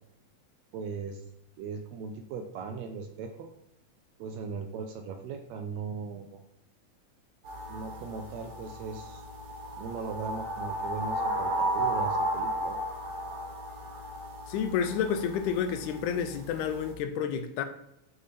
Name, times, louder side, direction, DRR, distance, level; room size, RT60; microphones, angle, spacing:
voice 1, 0.7-1.2 1.6-3.5 4.2-6.4 7.7-9.2 9.8-12.8, right 5 dB, 80° right, 1.6 m, -38 dB
sound 1, 7.4-16.9, right 1 dB, 55° right, 2.1 m, -34 dB
voice 2, 14.5-17.6, left 7 dB, 85° left, 2.0 m, -30 dB
6.7 x 3.6 x 4.2 m
omnidirectional pair, 3.5 m